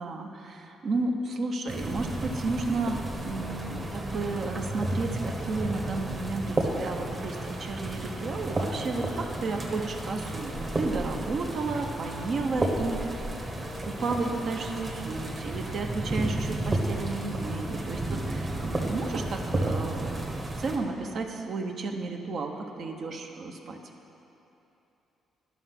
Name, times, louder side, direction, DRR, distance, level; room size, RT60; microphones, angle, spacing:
voice 1, 0.0-13.1 13.4-13.5 13.9-20.3 20.6-23.8, right 3 dB, 60° right, 4 dB, 0.9 m, -32 dB
sound 1, 1.7-20.8, right 1 dB, 30° right, 1.4 m, -32 dB
11.5 x 5.6 x 5.9 m, 3.0 s
cardioid pair, 90°, 0 cm